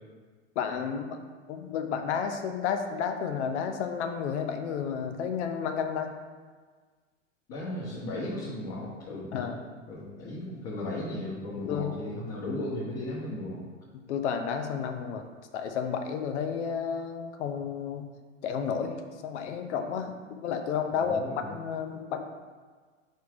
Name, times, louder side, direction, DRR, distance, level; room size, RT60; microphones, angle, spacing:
voice 1, 0.6-1.2 1.5-6.1 9.3-9.6 11.6-11.9 13.9-15.2 15.5-18.1 18.4-21.2 21.5-22.2, left 7 dB, 60° left, 6 dB, 0.8 m, -31 dB
voice 2, 7.5-9.6 9.9-13.6 20.9-21.5, left 1 dB, 40° left, -7 dB, 1.6 m, -36 dB
4.6 x 4.6 x 4.7 m, 1.5 s
hypercardioid pair, 100°, 39 cm